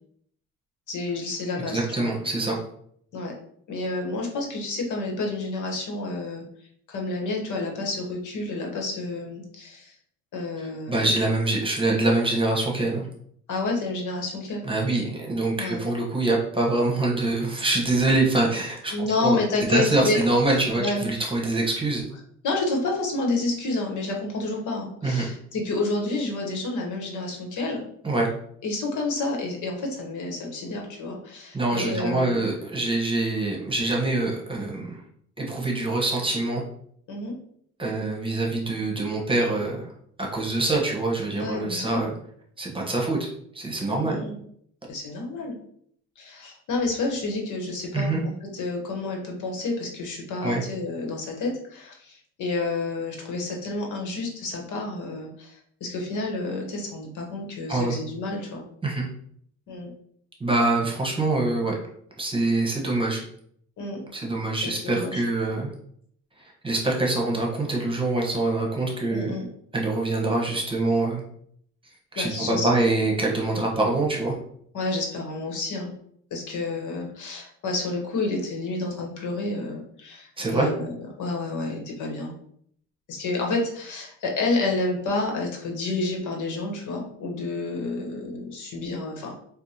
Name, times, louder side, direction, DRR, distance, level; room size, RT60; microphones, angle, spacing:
voice 1, 0.9-2.1 3.1-3.3 3.7-6.4 6.9-9.9 10.3-11.1 13.5-14.6 14.9-15.0 15.6-15.8 18.9-20.2 20.8-21.1 22.4-27.8 28.6-32.6 37.1-37.3 41.3-42.0 43.9-44.4 44.9-45.6 46.2-58.6 59.7-59.9 63.8-64.0 64.6-65.2 69.1-69.5 72.2-72.7 74.7-75.9 76.3-82.3 83.1-89.3, left 2 dB, 80° left, 1 dB, 1.0 m, -29 dB
voice 2, 1.7-2.6 10.9-13.1 14.6-19.4 19.7-22.0 25.0-25.3 28.0-28.3 31.5-35.0 35.4-36.6 37.8-39.8 40.2-42.1 42.6-43.3 43.5-44.2 47.9-48.2 50.4-50.6 57.7-57.9 58.8-59.0 60.4-61.7 62.2-63.2 64.1-65.7 66.4-69.3 69.7-71.2 72.1-74.4 80.4-80.7, right 2 dB, 15° right, -1 dB, 1.0 m, -24 dB
4.6 x 2.1 x 2.8 m, 0.65 s
cardioid pair, 90°, 30 cm